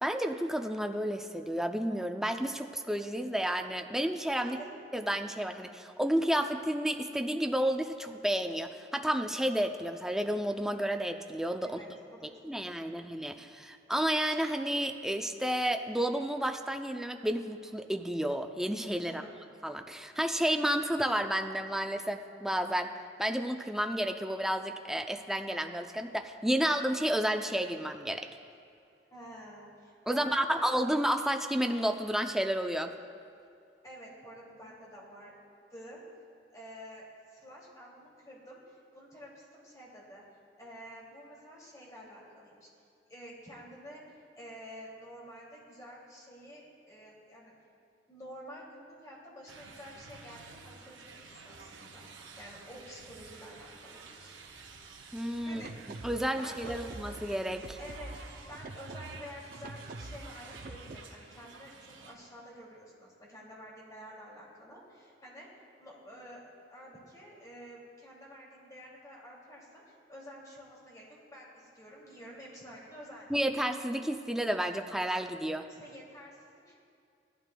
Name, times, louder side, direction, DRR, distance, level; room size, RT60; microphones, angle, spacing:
voice 1, 0.0-4.6 4.9-11.8 12.4-19.2 19.6-22.9 23.2-28.3 30.1-32.9 55.1-55.6 56.0-57.8 73.3-75.7, right 1 dB, ahead, 5 dB, 0.4 m, -31 dB
voice 2, 4.4-4.8 11.6-13.0 19.0-19.3 29.1-30.6 33.8-35.3 35.7-36.0 36.5-40.2 40.6-42.7 43.1-44.0 44.3-47.5 48.1-52.1 52.4-54.3 55.4-55.7 56.3-56.8 57.8-58.2 58.5-61.7 62.0-65.5 65.8-66.4 66.7-73.3 75.7-76.7, equal, 20° left, -4 dB, 2.5 m, -49 dB
sound 1, 49.5-62.1, right 4 dB, 75° right, 0.9 m, -52 dB
sound 2, 55.4-61.0, right 2 dB, 50° right, 0.6 m, -46 dB
17.0 x 12.0 x 2.2 m, 2.4 s
head